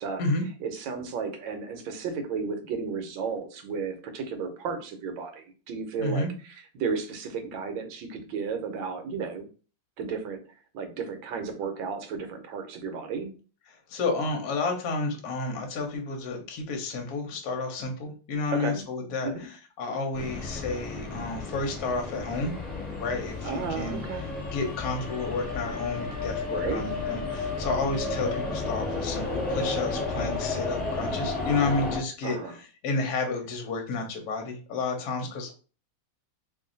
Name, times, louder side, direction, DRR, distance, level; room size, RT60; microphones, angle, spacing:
voice 1, 0.6-9.5 10.0-10.4 10.7-13.3 18.5-18.8 19.2-19.5 23.4-24.3 26.5-26.8 32.2-32.6, right 5 dB, 70° right, 6 dB, 1.3 m, -33 dB
voice 2, 6.0-6.3 13.7-22.5 22.9-24.0 24.5-32.4 32.8-35.5, left 3 dB, 60° left, 3 dB, 1.2 m, -31 dB
sound 1, 20.1-32.0, left 3 dB, 5° left, 1.0 m, -32 dB
3.1 x 2.6 x 3.8 m, 0.37 s
omnidirectional pair, 2.3 m